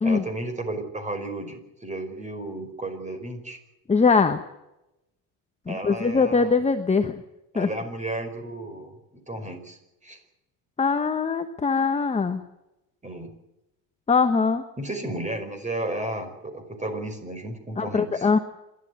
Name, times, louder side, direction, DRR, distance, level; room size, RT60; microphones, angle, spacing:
voice 1, 0.0-3.6 5.7-6.5 7.5-10.2 13.0-13.3 14.8-18.3, right 2 dB, 15° right, 8 dB, 5.1 m, -33 dB
voice 2, 3.9-4.4 5.7-7.2 7.5-7.7 10.8-12.4 14.1-14.6 17.8-18.4, left 5 dB, 15° left, 7 dB, 1.2 m, -22 dB
27.0 x 12.5 x 9.5 m, 0.92 s
cardioid pair, 120°, 48 cm